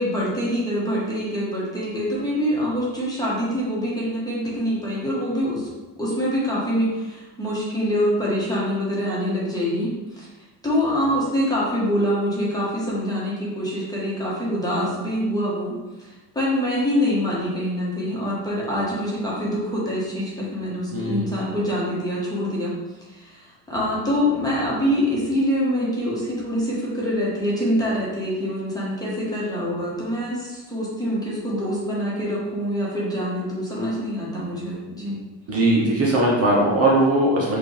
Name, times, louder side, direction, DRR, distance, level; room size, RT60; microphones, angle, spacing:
voice 1, 0.0-5.7 6.0-10.3 10.6-22.7 23.1-35.2, equal, 10° left, -7 dB, 1.4 m, -25 dB
voice 2, 20.9-21.3 35.5-37.6, right 1 dB, 35° right, -4 dB, 1.1 m, -19 dB
5.0 x 2.7 x 3.4 m, 1.1 s
cardioid pair, 115°, 40 cm